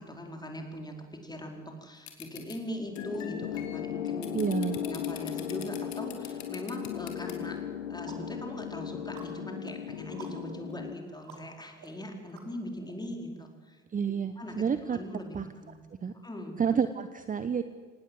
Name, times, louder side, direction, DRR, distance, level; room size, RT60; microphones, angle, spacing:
voice 1, 0.0-4.4 4.8-7.6 7.9-13.8 14.4-14.6 14.9-15.8 16.2-16.6, left 1 dB, 10° left, 2 dB, 4.8 m, -40 dB
sound 1, 2.1-2.5 3.0-7.3, left 12 dB, 50° left, 3.5 m, -44 dB
sound 2, 2.9-10.9, left 9 dB, 70° left, 1.0 m, -37 dB
voice 2, 4.3-4.8 13.9-15.0 15.3-15.4 16.0-16.1 16.6-17.6, right 6 dB, 20° right, 12 dB, 1.0 m, -29 dB
sound 3, 7.0-7.1 7.6-12.9, right 5 dB, 50° right, 5.1 m, -53 dB
26.0 x 18.5 x 7.9 m, 1.4 s
figure-of-eight pair, 60°, 36 cm